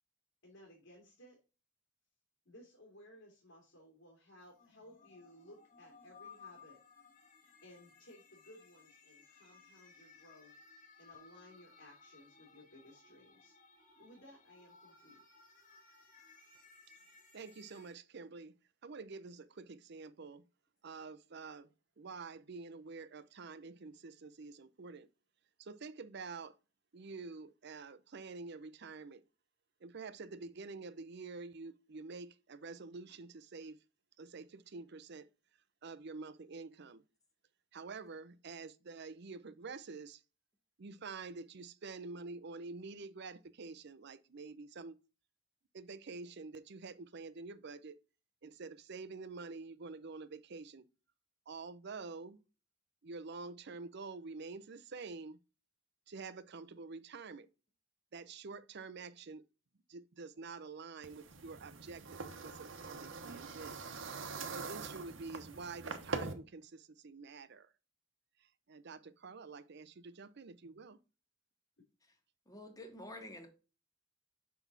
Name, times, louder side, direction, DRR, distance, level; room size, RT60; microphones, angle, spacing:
voice 1, 0.4-1.4 2.4-6.8 7.6-10.5 11.0-13.5 14.0-15.2, left 1 dB, 80° left, 2.6 m, -59 dB
sound 1, 4.4-17.9, left 5 dB, 45° left, 1.5 m, -60 dB
voice 2, 17.3-18.6 18.8-20.4 20.8-21.7 22.0-25.1 25.6-26.5 26.9-29.2 29.8-33.8 34.2-35.3 35.8-37.0 37.7-40.2 40.8-45.0 45.7-48.0 48.4-50.9 51.5-52.4 53.0-55.4 56.1-57.5 58.1-59.4 59.9-63.8 64.5-67.7 68.7-71.0, right 4 dB, 60° right, 0.6 m, -48 dB
sound 2, 61.0-66.3, right 4 dB, 75° right, 1.1 m, -43 dB
voice 3, 72.5-73.5, left 1 dB, 20° left, 1.6 m, -49 dB
6.1 x 5.8 x 3.9 m
head